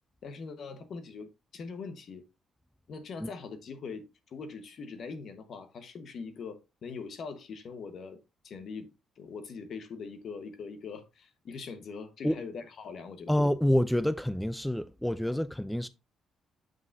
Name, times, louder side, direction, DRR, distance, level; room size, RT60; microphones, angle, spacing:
voice 1, 0.2-2.2 2.9-8.2 8.4-8.9 9.2-13.3 15.3-15.4, left 5 dB, 60° left, 1.1 m, -42 dB
voice 2, 13.3-15.9, left 1 dB, 5° left, 0.3 m, -27 dB
7.6 x 5.7 x 2.6 m
cardioid pair, 90°, 0 cm